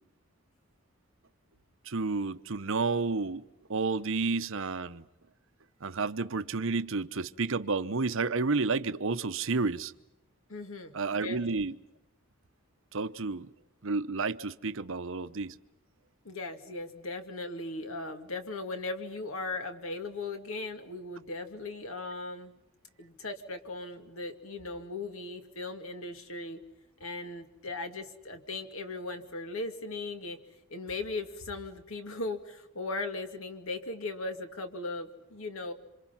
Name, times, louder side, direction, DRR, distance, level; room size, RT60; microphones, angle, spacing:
voice 1, 1.8-3.4 3.7-5.0 5.8-9.9 10.9-11.7 12.9-13.5 13.8-15.5, right 4 dB, 65° right, 0.9 m, -31 dB
voice 2, 10.5-11.4 16.2-22.5 23.0-26.6 27.0-30.4 30.7-35.7, left 2 dB, 70° left, 2.5 m, -38 dB
27.5 x 26.0 x 5.8 m
head